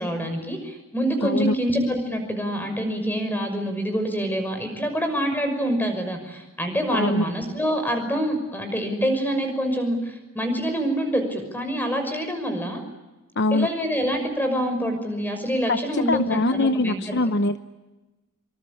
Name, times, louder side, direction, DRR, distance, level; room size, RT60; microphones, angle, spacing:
voice 1, 0.0-12.8 13.5-17.2, equal, 10° left, 6 dB, 6.0 m, -26 dB
voice 2, 1.2-1.5 6.9-7.2 13.4-13.7 15.7-17.6, left 2 dB, 55° left, 10 dB, 0.9 m, -23 dB
26.0 x 25.5 x 8.6 m, 1.1 s
head